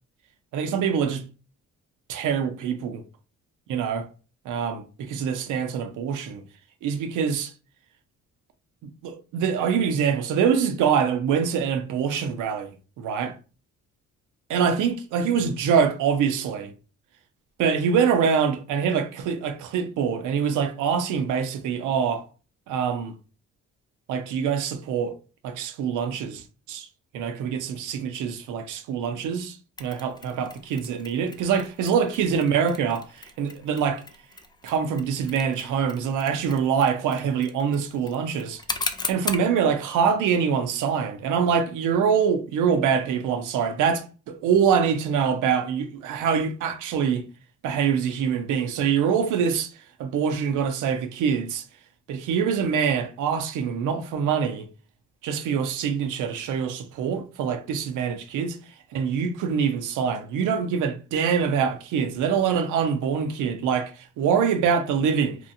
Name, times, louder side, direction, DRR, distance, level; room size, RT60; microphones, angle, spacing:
voice 1, 0.5-1.2 2.1-3.0 3.7-4.1 4.4-6.4 6.8-7.5 8.8-13.3 14.5-16.7 17.6-22.3 22.7-23.2 24.1-25.2 25.4-26.9 27.1-34.0 34.6-38.6 39.1-47.2 47.6-49.7 50.0-51.6 52.1-54.7 55.2-58.6 58.9-65.4, right 7 dB, 85° right, 0.6 m, -24 dB
Mechanisms, 29.8-39.5, left 3 dB, 15° left, 0.3 m, -38 dB
2.8 x 2.3 x 2.6 m
cardioid pair, 90°, 30 cm